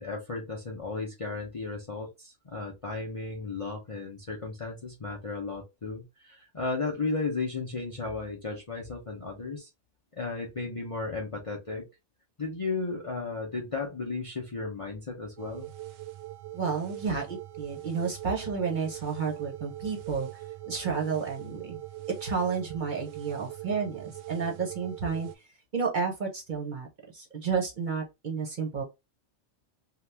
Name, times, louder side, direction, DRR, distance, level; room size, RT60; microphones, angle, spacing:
voice 1, 0.0-9.7 10.1-11.8 12.4-15.7, left 3 dB, 35° left, 0.6 m, -34 dB
sound 1, 15.4-25.3, right 15 dB, 75° right, 0.9 m, -42 dB
voice 2, 16.5-20.3 20.7-21.8 22.2-25.3 25.7-26.9 27.1-28.8, right 5 dB, 45° right, 0.8 m, -31 dB
2.8 x 2.3 x 3.3 m
omnidirectional pair, 1.3 m